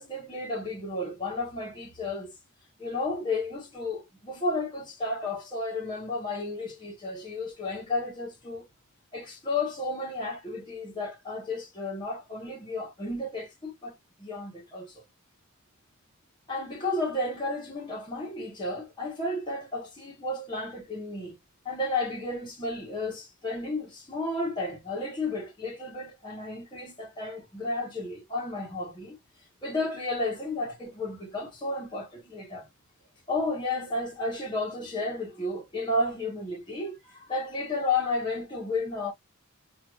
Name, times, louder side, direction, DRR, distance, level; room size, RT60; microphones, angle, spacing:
voice 1, 0.0-2.4 2.8-8.7 9.1-13.9 14.2-15.0 16.5-21.4 21.6-29.2 29.6-32.7 33.3-39.1, left 2 dB, 20° left, 1.0 m, -32 dB
2.9 x 2.5 x 2.3 m
head